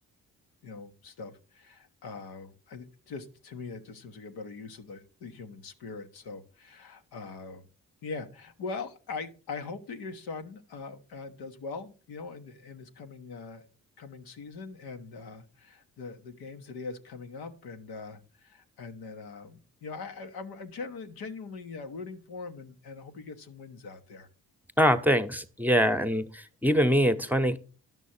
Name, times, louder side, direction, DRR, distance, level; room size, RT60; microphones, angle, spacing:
voice 1, 0.6-7.7 8.0-13.6 14.0-24.3, left 4 dB, 75° left, 7 dB, 1.1 m, -42 dB
voice 2, 24.8-27.6, equal, 5° right, 10 dB, 1.0 m, -24 dB
11.0 x 6.3 x 4.3 m, 0.36 s
supercardioid pair, 55°, 37 cm